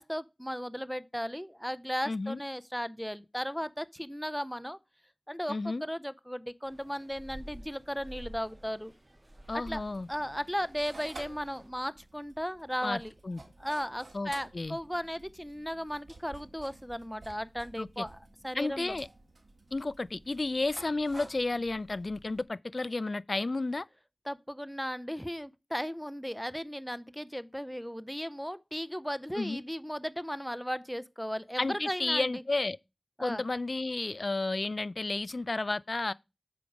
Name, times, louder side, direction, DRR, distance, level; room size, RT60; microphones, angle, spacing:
voice 1, 0.0-4.8 5.3-8.9 9.5-9.8 10.1-13.1 13.6-18.2 18.4-19.0 24.3-32.4 33.2-33.4, equal, 5° left, 0.6 m, -36 dB
voice 2, 2.1-2.4 5.5-5.8 9.5-10.1 12.8-13.4 14.1-14.8 17.8-18.1 18.5-19.1 19.7-23.8 29.4-29.6 31.6-32.8 33.2-36.1, left 2 dB, 55° left, 0.3 m, -32 dB
sound 1, 6.6-11.7, right 1 dB, 35° right, 1.5 m, -50 dB
sound 2, 9.7-22.4, right 2 dB, 65° right, 1.6 m, -52 dB
6.9 x 4.7 x 5.0 m
cardioid pair, 45°, 0 cm